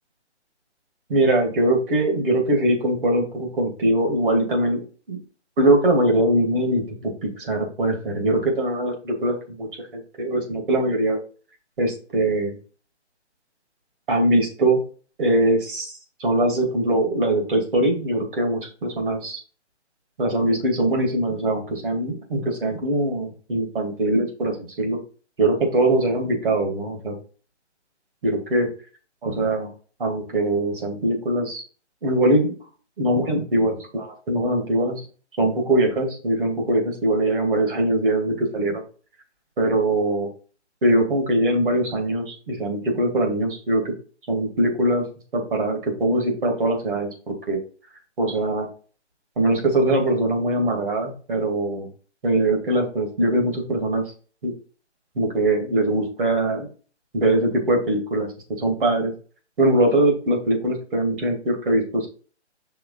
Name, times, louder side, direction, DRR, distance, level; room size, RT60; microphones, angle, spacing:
voice 1, 1.1-5.2 5.6-9.7 10.2-11.2 11.8-12.5 14.1-14.8 15.2-15.9 16.2-19.4 20.2-25.0 25.4-27.2 28.2-28.7 29.2-29.7 30.0-31.6 32.0-32.5 33.0-35.0 35.4-38.8 39.6-40.3 40.8-43.8 44.3-45.0 45.3-47.6 48.2-48.7 49.4-51.9 52.2-54.0 54.4-54.5 55.2-56.7 57.1-58.3 58.6-59.1 59.6-62.1, right 1 dB, 45° right, 2 dB, 2.5 m, -22 dB
5.6 x 3.5 x 5.5 m, 0.38 s
figure-of-eight pair, 145°, 35 cm